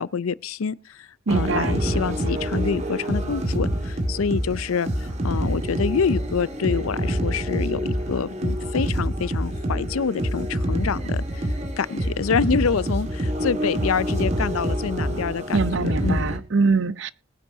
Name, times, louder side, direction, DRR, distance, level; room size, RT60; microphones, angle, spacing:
voice 1, 0.0-11.4 11.8-16.3, left 5 dB, 85° left, 0.5 m, -27 dB
sound 1, 1.3-16.4, equal, 30° right, 1.9 m, -26 dB
voice 2, 1.3-1.8 15.5-17.1, right 4 dB, 60° right, 0.7 m, -23 dB
20.5 x 10.0 x 2.7 m
head